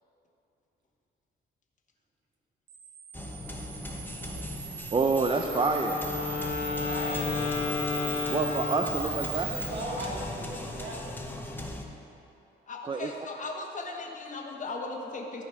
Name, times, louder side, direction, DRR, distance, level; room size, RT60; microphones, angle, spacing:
Camera, 2.7-9.7, right 8 dB, 80° right, 1.0 m, -39 dB
sound 1, 3.1-11.8, left 1 dB, 10° left, 0.9 m, -39 dB
voice 1, 4.9-6.0 8.3-9.6 12.9-13.2, right 4 dB, 25° right, 4 dB, 0.5 m, -27 dB
Wind instrument woodwind instrument, 5.4-9.5, left 6 dB, 80° left, 1.5 m, -32 dB
voice 2, 6.2-7.4 9.0-11.1, right 1 dB, 60° right, -3 dB, 2.1 m, -39 dB
voice 3, 12.7-15.4, left 3 dB, 40° left, 1 dB, 1.3 m, -37 dB
14.5 x 4.9 x 4.3 m, 2.8 s
cardioid pair, 90°, 20 cm